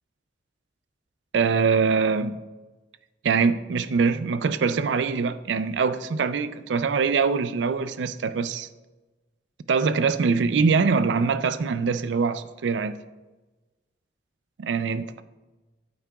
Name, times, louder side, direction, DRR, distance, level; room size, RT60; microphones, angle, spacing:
voice 1, 1.3-2.4 3.2-8.7 9.7-13.0 14.6-15.2, right 5 dB, 90° right, 0.4 m, -23 dB
8.7 x 8.5 x 2.3 m
head